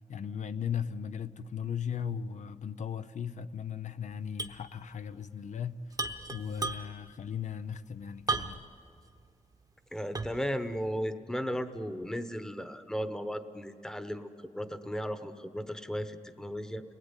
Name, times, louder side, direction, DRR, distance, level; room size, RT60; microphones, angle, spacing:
voice 1, 0.0-6.0 6.3-8.6, left 7 dB, 70° left, 0.6 m, -37 dB
sound 1, 4.4-4.6 4.9-5.0 5.9-7.1 8.3-8.8 9.3-9.4 10.1-10.5, right 3 dB, 30° right, 1.0 m, -34 dB
voice 2, 9.9-14.3 14.5-16.8, equal, 5° left, 1.0 m, -35 dB
29.5 x 20.0 x 9.8 m
wide cardioid pair, 175°, 13 cm